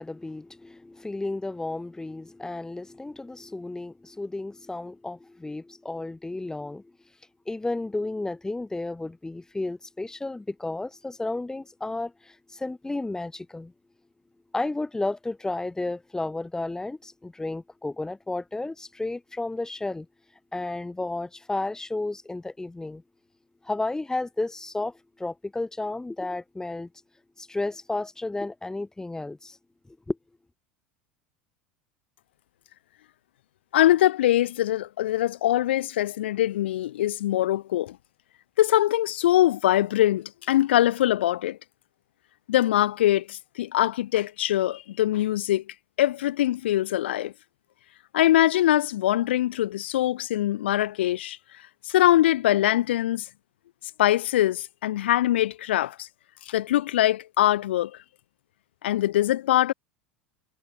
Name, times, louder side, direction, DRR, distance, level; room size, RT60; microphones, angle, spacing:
voice 1, 0.0-6.8 7.5-13.7 14.5-20.1 20.5-23.0 23.6-26.9 27.4-29.6 29.9-30.2, left 2 dB, 10° left, 4.6 m, -32 dB
voice 2, 33.7-38.0 38.6-41.6 42.5-45.6 46.0-47.3 48.1-51.4 51.9-53.2 54.0-56.1 56.5-57.9 58.8-59.7, left 13 dB, 75° left, 1.6 m, -23 dB
hypercardioid pair, 80°, 6 cm